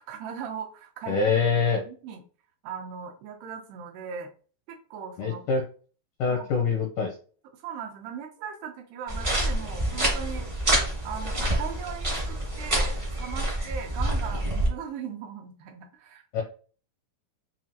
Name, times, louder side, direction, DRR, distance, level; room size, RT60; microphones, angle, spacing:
voice 1, 0.0-2.2 2.6-4.3 4.9-5.4 6.3-6.5 7.5-10.5 11.0-16.4, right 7 dB, 90° right, 1 dB, 3.0 m, -39 dB
voice 2, 1.1-1.8 5.2-5.6 6.2-7.2 16.3-16.4, left 5 dB, 80° left, 1 dB, 1.8 m, -24 dB
sound 1, 9.1-14.7, right 1 dB, 45° right, 0.6 m, -27 dB
7.3 x 2.5 x 2.8 m, 0.39 s
omnidirectional pair, 4.6 m